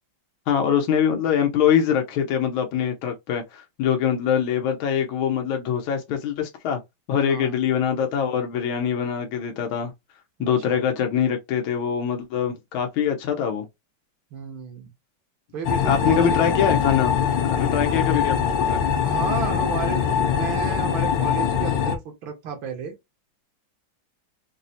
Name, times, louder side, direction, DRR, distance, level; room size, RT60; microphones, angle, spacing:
voice 1, 0.5-6.8 7.1-9.9 10.4-13.6 15.8-17.2 17.4-18.8, left 8 dB, 90° left, 1.5 m, -23 dB
voice 2, 7.2-7.6 10.7-10.8 14.3-14.9 15.5-16.7 19.0-22.9, right 7 dB, 75° right, 1.7 m, -33 dB
sound 1, 15.6-22.0, left 7 dB, 70° left, 1.2 m, -23 dB
4.5 x 2.1 x 2.6 m
omnidirectional pair, 2.2 m